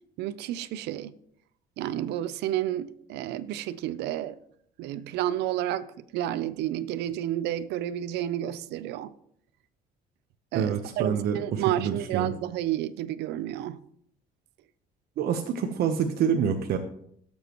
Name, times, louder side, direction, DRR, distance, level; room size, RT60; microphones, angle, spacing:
voice 1, 0.2-1.1 1.8-4.4 4.8-9.1 10.5-13.8, right 12 dB, 85° right, 0.6 m, -31 dB
voice 2, 10.5-12.3 15.2-16.8, right 7 dB, 65° right, 1.0 m, -27 dB
18.5 x 7.3 x 3.1 m
cardioid pair, 110°, 17 cm